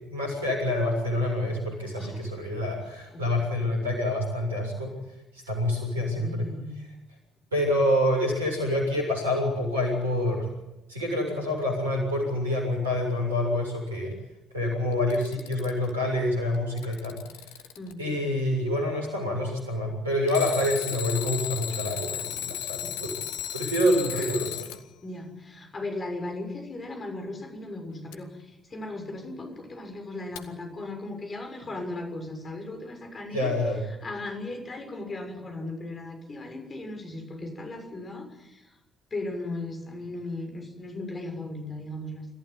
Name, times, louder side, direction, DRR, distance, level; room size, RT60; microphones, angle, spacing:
voice 1, 0.1-4.9 5.3-6.5 6.8-6.9 7.5-10.5 10.9-14.1 14.5-17.2 17.5-17.6 18.0-23.2 23.5-24.7 33.3-33.8, left 1 dB, 85° right, 1 dB, 7.1 m, -27 dB
voice 2, 6.1-6.8 17.8-18.0 22.8-23.0 24.1-24.3 25.0-33.5 34.0-38.8 39.1-42.3, left 2 dB, 35° left, 5 dB, 6.7 m, -37 dB
Alarm, 14.9-15.9 16.5-17.9 20.3-24.8 28.1-28.2 30.4-30.5, left 11 dB, 70° left, 1.3 m, -35 dB
26.5 x 15.0 x 9.6 m, 0.98 s
figure-of-eight pair, 45°, 0 cm